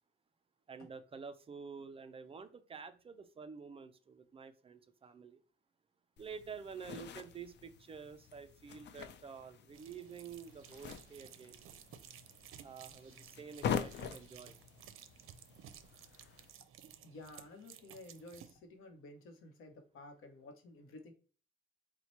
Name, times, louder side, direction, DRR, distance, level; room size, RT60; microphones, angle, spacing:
voice 1, 0.7-5.4 6.2-11.6 12.6-14.5, right 6 dB, 30° right, 0.3 m, -49 dB
sound 1, 6.2-16.5, left 8 dB, 60° left, 0.4 m, -45 dB
sound 2, 9.7-18.5, right 10 dB, 80° right, 0.5 m, -56 dB
voice 2, 17.0-21.1, left 2 dB, 80° left, 0.9 m, -53 dB
4.3 x 2.1 x 4.2 m
cardioid pair, 145°, 21 cm